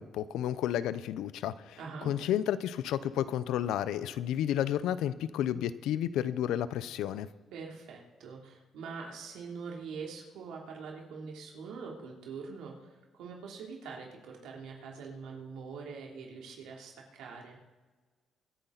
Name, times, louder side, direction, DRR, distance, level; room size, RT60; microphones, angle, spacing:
voice 1, 0.0-7.3, left 11 dB, 90° left, 15 dB, 0.6 m, -31 dB
voice 2, 1.8-2.1 7.5-17.6, right 5 dB, 90° right, 0 dB, 3.0 m, -44 dB
24.5 x 10.0 x 4.0 m, 1.4 s
cardioid pair, 90°, 0 cm